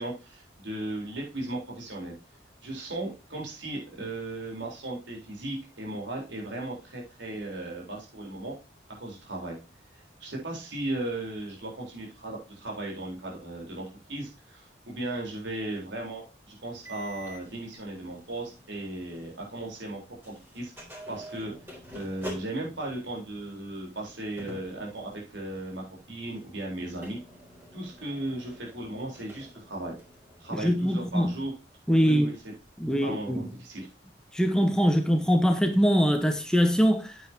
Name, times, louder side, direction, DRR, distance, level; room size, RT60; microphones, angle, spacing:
voice 1, 0.0-2.1 2.6-8.5 9.0-9.6 10.2-20.0 20.3-20.7 21.1-21.5 21.9-27.2 27.7-29.9 30.4-31.5 32.0-32.3 33.0-33.9, right 1 dB, 85° right, 4.0 m, -36 dB
sound 1, 16.9-19.9 20.2-31.4, equal, 15° right, 3.8 m, -48 dB
voice 2, 30.5-31.3 31.9-32.3 32.8-33.5 34.3-37.2, equal, 5° left, 1.1 m, -23 dB
9.1 x 8.3 x 2.9 m
head